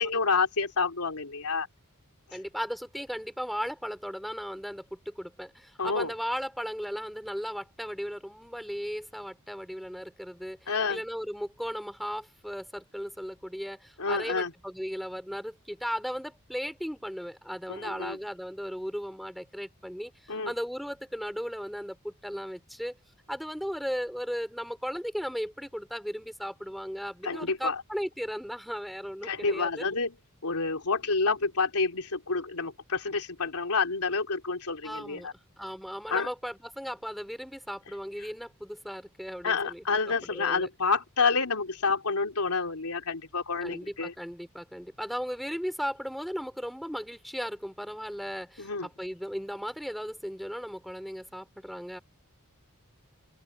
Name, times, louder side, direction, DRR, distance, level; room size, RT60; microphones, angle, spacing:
voice 1, 0.0-1.7 5.8-6.1 10.7-11.0 14.0-14.5 17.7-18.2 20.3-20.5 27.2-27.8 29.2-30.2 30.4-35.3 36.1-36.3 39.4-44.1 48.6-48.9, left 4 dB, 85° left, 3.2 m, -29 dB
voice 2, 2.3-23.0 23.3-29.8 34.8-35.3 35.6-40.7 43.6-52.0, equal, ahead, 4.4 m, -36 dB
open air
head